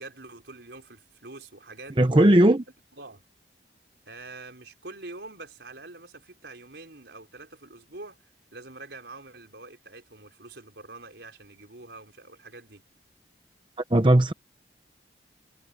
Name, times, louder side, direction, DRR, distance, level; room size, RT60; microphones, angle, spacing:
voice 1, 0.0-2.3 3.0-3.2 4.1-8.2 8.5-12.8, right 2 dB, 75° right, 4.3 m, -45 dB
voice 2, 2.0-2.6 13.9-14.3, right 1 dB, 25° right, 0.8 m, -17 dB
head